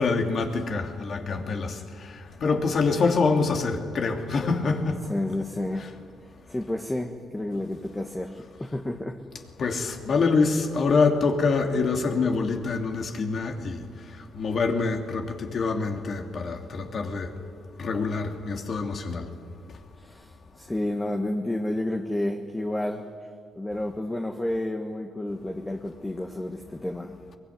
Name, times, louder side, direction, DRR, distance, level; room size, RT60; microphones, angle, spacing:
voice 1, 0.0-5.0 9.6-17.3 17.8-19.3, left 4 dB, 55° left, 3.0 m, -26 dB
voice 2, 5.1-5.9 6.5-9.2 20.0-23.1 23.5-27.2, left 1 dB, 15° left, 1.7 m, -30 dB
23.0 x 22.5 x 9.5 m
cardioid pair, 90°, 0 cm